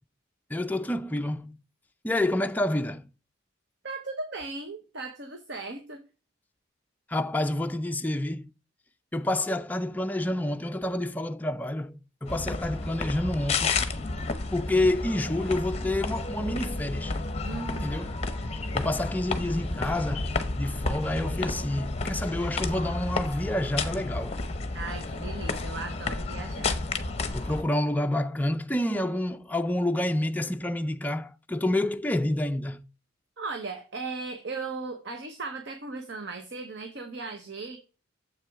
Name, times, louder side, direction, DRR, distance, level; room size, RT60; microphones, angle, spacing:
voice 1, 0.5-1.6 2.0-3.1 7.1-8.5 9.1-13.8 14.5-17.1 17.8-18.2 18.7-24.4 27.3-32.8, left 1 dB, 10° left, 0.4 m, -28 dB
voice 2, 3.8-6.0 7.4-7.5 17.4-18.1 24.7-26.8 33.4-37.8, right 3 dB, 60° right, 0.9 m, -37 dB
sound 1, 12.3-27.6, left 3 dB, 30° left, 0.8 m, -31 dB
7.5 x 6.0 x 3.5 m
head